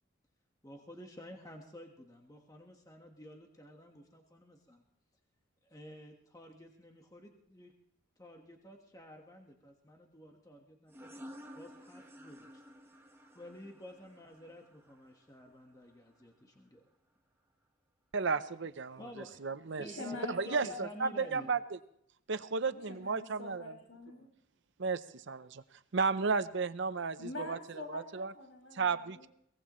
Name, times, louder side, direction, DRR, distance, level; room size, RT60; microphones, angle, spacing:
voice 1, 0.6-4.8 5.6-7.7 8.2-10.9 11.5-12.6 13.3-16.8 18.3-18.4 19.0-19.4 19.8-21.5, equal, 15° left, 2 dB, 1.4 m, -51 dB
sound 1, 10.9-16.2, equal, 10° right, 1.3 m, -53 dB
voice 2, 18.1-19.0 19.4-19.8 20.3-21.8 22.3-23.6 24.8-25.6 25.9-27.6 27.9-28.3 28.7-29.3, right 4 dB, 60° right, 12 dB, 0.7 m, -33 dB
voice 3, 19.7-21.5 22.9-24.3 27.2-29.3, left 3 dB, 70° left, 1 dB, 5.8 m, -46 dB
22.5 x 18.5 x 3.1 m, 0.71 s
head